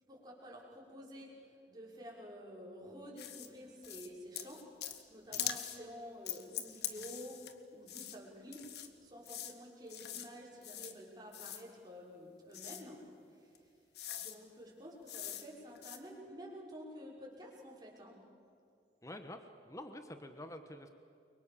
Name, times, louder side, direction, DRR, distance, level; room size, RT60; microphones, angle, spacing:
voice 1, 0.1-13.7 14.2-18.3, equal, 25° right, -3 dB, 5.8 m, -50 dB
sound 1, 3.2-3.5 3.8-4.1 4.3-5.0 5.3-5.8 6.3-7.5 7.9-8.2 8.5-8.9 9.3-9.5 9.9-10.3 10.6-10.9 11.3-11.6 12.5-12.8 13.5-13.6 14.0-14.4 15.1-15.5 15.8-16.0, left 10 dB, 65° left, 1.8 m, -42 dB
voice 2, 19.0-20.9, left 1 dB, 20° left, 7 dB, 1.3 m, -48 dB
30.0 x 24.0 x 7.1 m, 2.4 s
head